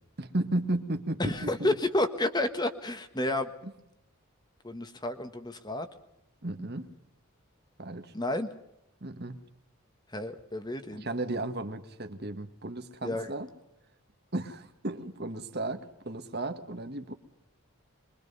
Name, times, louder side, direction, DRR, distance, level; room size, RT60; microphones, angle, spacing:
voice 1, 0.2-1.7 6.4-6.9 7.8-8.1 9.0-9.4 11.0-13.5 14.3-17.1, right 2 dB, 45° right, 7 dB, 1.7 m, -34 dB
voice 2, 1.2-3.5 4.6-5.9 8.1-8.5 10.1-11.1 13.0-13.3, left 1 dB, 20° left, 9 dB, 1.4 m, -30 dB
24.5 x 23.0 x 5.5 m, 0.85 s
head